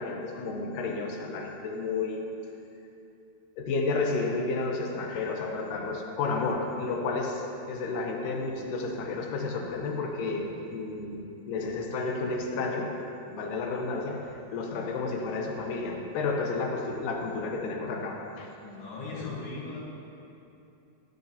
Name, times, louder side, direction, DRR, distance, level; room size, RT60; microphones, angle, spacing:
voice 1, 0.0-2.3 3.6-13.0 13.3-18.5 19.2-19.3, left 3 dB, 75° left, 2 dB, 2.2 m, -31 dB
voice 2, 18.6-19.8, left 3 dB, 55° left, -5 dB, 1.9 m, -38 dB
15.0 x 9.2 x 2.8 m, 2.8 s
omnidirectional pair, 4.2 m